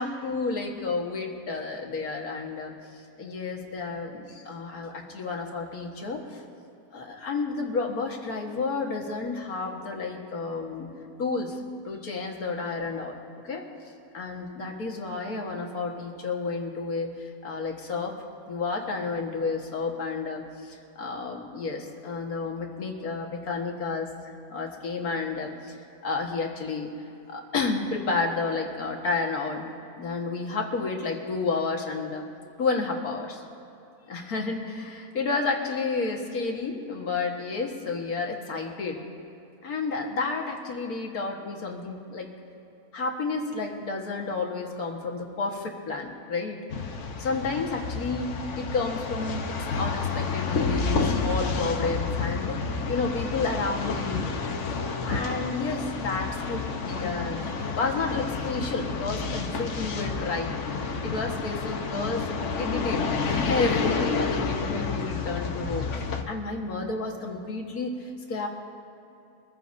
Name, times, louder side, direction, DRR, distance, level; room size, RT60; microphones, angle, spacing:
voice 1, 0.0-6.4 6.9-10.9 11.2-11.6 11.9-13.2 13.4-18.2 18.5-25.8 26.0-26.9 27.3-29.7 30.0-32.2 32.6-33.4 34.1-39.0 39.6-42.3 42.9-46.6 47.2-54.3 55.0-60.6 60.9-65.9 66.2-68.5, left 4 dB, 80° left, 1 dB, 2.0 m, -31 dB
sound 1, 46.7-66.2, left 4 dB, 55° left, 1.2 m, -30 dB
24.0 x 15.0 x 2.7 m, 2.9 s
omnidirectional pair, 1.6 m